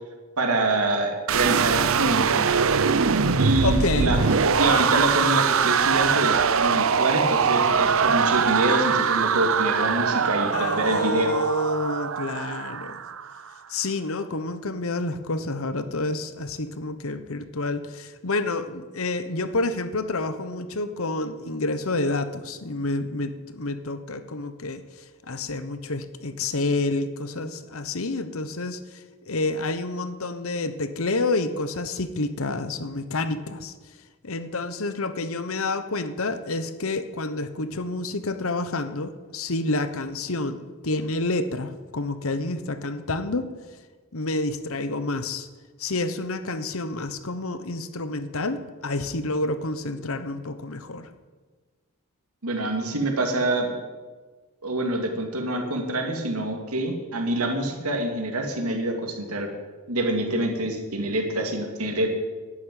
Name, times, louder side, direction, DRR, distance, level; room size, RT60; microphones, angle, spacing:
voice 1, 0.4-2.5 3.4-4.2 4.6-11.3 52.4-53.7 54.6-59.5 59.9-62.1, right 1 dB, 80° right, 3 dB, 2.6 m, -26 dB
sound 1, 1.3-13.3, right 6 dB, 65° right, 0.6 m, -22 dB
voice 2, 3.6-4.2 10.5-13.0 13.7-24.8 25.3-33.7 34.2-43.5 44.1-45.5 45.8-51.1, left 2 dB, 70° left, 11 dB, 1.1 m, -29 dB
11.0 x 10.0 x 9.3 m, 1.3 s
head